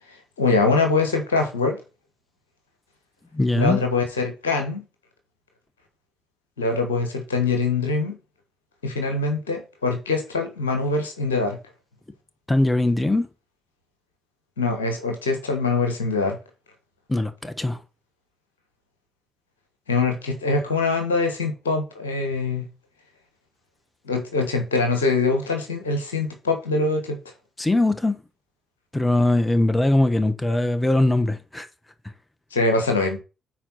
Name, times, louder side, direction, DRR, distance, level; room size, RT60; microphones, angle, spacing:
voice 1, 0.4-1.8 3.5-4.8 6.6-8.1 8.8-11.6 14.6-16.4 19.9-22.6 24.1-27.2 32.5-33.2, left 3 dB, 85° left, 1.4 m, -23 dB
voice 2, 3.3-3.8 12.5-13.3 17.1-17.8 27.6-28.2 28.9-31.7, left 2 dB, 15° left, 1.2 m, -21 dB
9.1 x 4.5 x 4.2 m
figure-of-eight pair, 40°, 0 cm